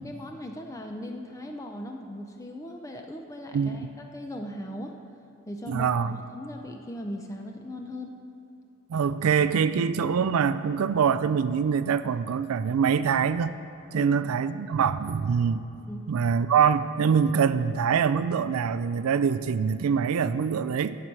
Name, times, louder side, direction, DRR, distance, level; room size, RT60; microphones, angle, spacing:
voice 1, 0.0-5.0 5.5-8.2 13.9-14.3 15.9-16.1, left 1 dB, 15° left, 3 dB, 0.6 m, -38 dB
voice 2, 3.5-3.9 5.7-6.2 8.9-13.5 13.9-15.6 16.1-21.0, right 6 dB, 85° right, 14 dB, 0.4 m, -24 dB
14.0 x 4.7 x 7.5 m, 3.0 s
head